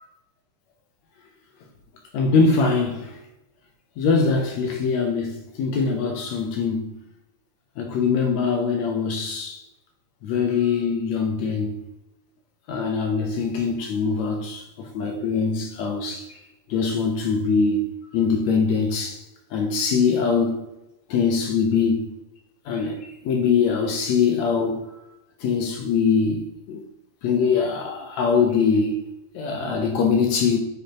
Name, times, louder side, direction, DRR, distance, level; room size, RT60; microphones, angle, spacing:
voice 1, 2.1-3.1 4.0-6.9 7.8-9.6 10.2-11.8 12.7-16.4 16.7-17.8 18.1-19.2 19.5-20.7 21.1-22.1 22.7-24.9 25.4-26.8 27.2-29.0 29.3-30.6, left 5 dB, 75° left, 2.1 m, -22 dB
9.3 x 5.0 x 3.0 m
omnidirectional pair, 3.4 m